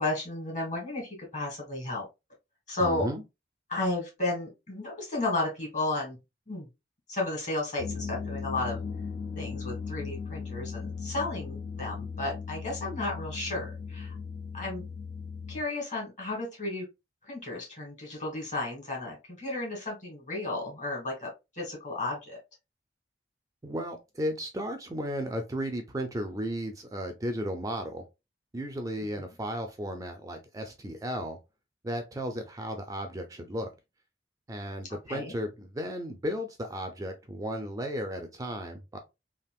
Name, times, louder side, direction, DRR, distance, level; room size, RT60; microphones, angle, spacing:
voice 1, 0.0-2.1 2.7-3.1 3.7-6.2 6.5-6.7 7.1-8.8 9.4-14.1 14.5-14.8 15.5-16.9 17.2-21.3 21.5-22.4 29.2-29.3 35.1-35.3, left 2 dB, 45° left, 1.8 m, -33 dB
voice 2, 2.8-3.2 23.6-28.0 28.5-31.4 31.8-33.7 34.5-39.0, equal, 20° right, 0.4 m, -34 dB
sound 1, 7.8-15.6, left 5 dB, 60° left, 0.4 m, -37 dB
3.5 x 2.4 x 2.3 m
head